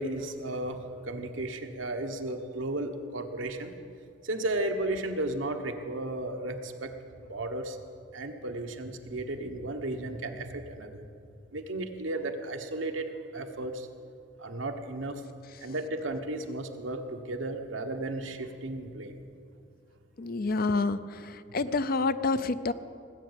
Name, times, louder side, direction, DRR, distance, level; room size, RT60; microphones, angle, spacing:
voice 1, 0.0-3.7 4.2-6.9 7.2-7.8 8.1-11.1 11.5-13.9 14.4-15.2 15.6-19.2, right 2 dB, 85° right, 5 dB, 1.2 m, -34 dB
voice 2, 20.2-22.7, left 3 dB, 50° left, 13 dB, 0.5 m, -28 dB
18.5 x 8.1 x 8.1 m, 2.4 s
head